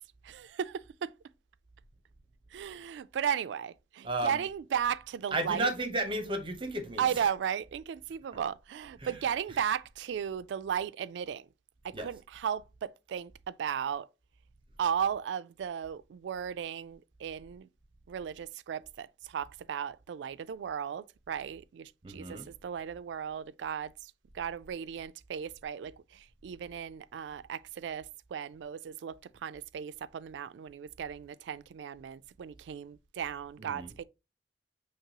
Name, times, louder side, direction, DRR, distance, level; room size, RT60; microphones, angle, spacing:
voice 1, 0.2-1.1 2.5-5.7 7.0-11.5 11.8-14.1 14.8-17.7 18.1-34.0, right 8 dB, 90° right, 0.3 m, -35 dB
voice 2, 4.0-4.4 5.3-7.3 9.0-9.2 11.9-12.1 22.0-22.5 33.6-33.9, right 2 dB, 30° right, 0.8 m, -33 dB
5.9 x 3.1 x 2.8 m
head